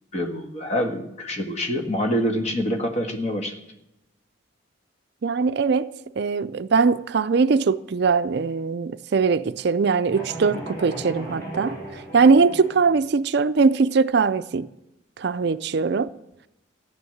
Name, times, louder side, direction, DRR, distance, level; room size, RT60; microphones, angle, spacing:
voice 1, 0.1-3.6, equal, 35° left, 1.6 m, -26 dB
voice 2, 5.2-11.8 12.1-14.7 15.2-16.1, right 4 dB, 55° right, 0.4 m, -21 dB
sound 1, 10.1-13.0, right 1 dB, 15° left, 6.3 m, -36 dB
14.5 x 9.5 x 7.9 m
head